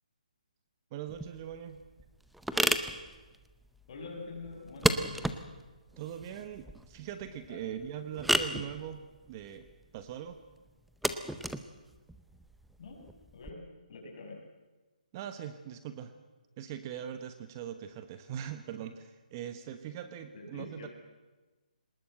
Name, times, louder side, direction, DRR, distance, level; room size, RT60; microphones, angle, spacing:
voice 1, 0.9-1.9 6.0-9.7 9.9-10.4 15.1-16.1 16.6-20.9, right 9 dB, 25° right, 9 dB, 1.1 m, -41 dB
sound 1, 1.1-13.5, right 1 dB, ahead, 0.6 m, -34 dB
voice 2, 3.9-5.1 7.5-7.7 12.8-13.1 13.3-13.6 13.9-14.4 20.3-20.9, left 3 dB, 40° left, 1 dB, 6.2 m, -45 dB
22.5 x 20.0 x 7.8 m, 1.2 s
hypercardioid pair, 160°, 5 cm